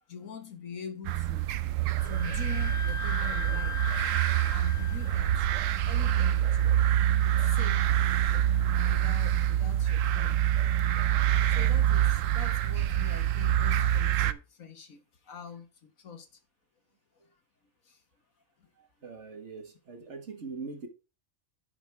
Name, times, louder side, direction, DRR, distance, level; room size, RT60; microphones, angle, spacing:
voice 1, 0.0-1.5 2.0-3.9 4.5-5.5 5.9-6.9 7.2-7.9 8.3-8.5 8.9-10.4 11.4-16.3 17.8-18.0 18.6-18.7, left 6 dB, 75° left, 1.8 m, -44 dB
sound 1, 1.0-14.3, right 11 dB, 70° right, 0.9 m, -26 dB
Wind instrument woodwind instrument, 2.0-9.4, left 5 dB, 40° left, 0.8 m, -42 dB
voice 2, 19.0-20.9, right 4 dB, 55° right, 1.9 m, -41 dB
10.0 x 6.1 x 3.4 m
omnidirectional pair, 1.4 m